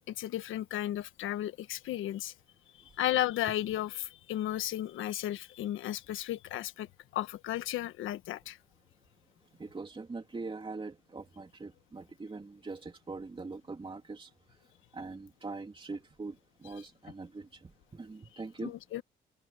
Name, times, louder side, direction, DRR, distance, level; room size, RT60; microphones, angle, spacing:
voice 1, 0.1-2.3 3.0-6.9 7.1-8.6 18.6-19.0, left 13 dB, 85° left, 1.4 m, -34 dB
voice 2, 9.6-14.3 14.9-18.7, right 3 dB, 25° right, 3.1 m, -42 dB
open air
cardioid pair, 90°, 20 cm